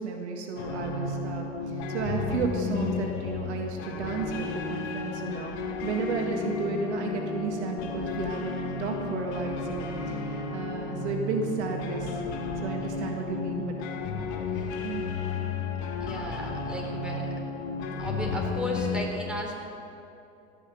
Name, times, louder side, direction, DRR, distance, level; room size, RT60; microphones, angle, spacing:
voice 1, 0.0-1.5 1.9-5.6 5.8-12.1 12.6-13.7 14.8-15.0, right 4 dB, 90° right, 2 dB, 1.8 m, -32 dB
sound 1, 0.6-19.0, left 4 dB, 75° left, 1.8 m, -33 dB
voice 2, 12.8-13.3 16.0-17.2 18.0-19.6, equal, 5° right, -1 dB, 3.7 m, -35 dB
17.0 x 6.4 x 9.2 m, 2.9 s
hypercardioid pair, 85°, 33 cm